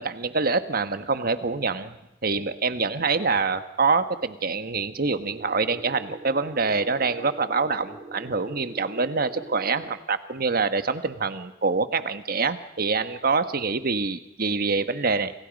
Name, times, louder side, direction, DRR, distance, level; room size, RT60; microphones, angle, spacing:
voice 1, 0.0-1.9 2.2-15.3, right 4 dB, 55° right, 11 dB, 1.3 m, -25 dB
sound 1, 5.0-10.0, right 2 dB, 35° right, 1.5 m, -43 dB
29.0 x 27.0 x 5.3 m, 0.90 s
head